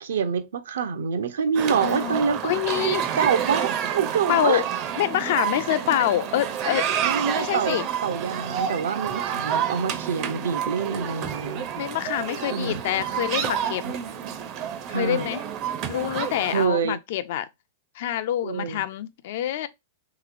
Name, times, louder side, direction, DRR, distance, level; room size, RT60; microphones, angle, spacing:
voice 1, 0.0-2.5 2.8-4.6 7.0-11.7 12.5-12.8 13.8-14.0 14.9-15.3 16.5-17.0 18.4-18.8, right 6 dB, 85° right, 0.6 m, -26 dB
sound 1, 1.5-16.7, right 9 dB, 35° right, 0.4 m, -29 dB
voice 2, 1.8-3.1 4.3-4.7 5.0-6.9 7.3-7.9 11.8-13.8 14.9-15.4 15.9-17.5 18.0-19.7, left 12 dB, 60° left, 0.3 m, -26 dB
3.0 x 2.9 x 2.5 m
supercardioid pair, 150°, 0 cm